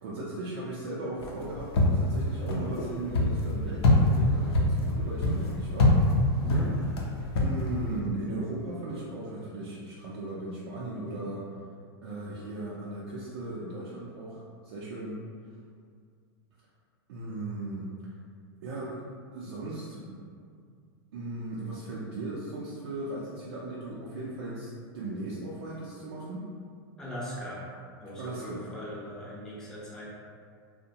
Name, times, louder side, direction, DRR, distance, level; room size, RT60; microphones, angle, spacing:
voice 1, 0.0-6.0 7.4-11.5 12.0-15.2 17.1-17.9 18.6-19.0 19.3-20.2 21.1-26.5 28.2-28.6, right 2 dB, 80° right, -7 dB, 0.5 m, -37 dB
sound 1, 1.2-8.0, left 1 dB, 85° left, 0.5 m, -25 dB
voice 2, 6.4-6.7 27.0-27.7 28.0-30.1, left 1 dB, 5° left, -7 dB, 0.4 m, -39 dB
2.6 x 2.1 x 2.8 m, 2.2 s
supercardioid pair, 160°, 13 cm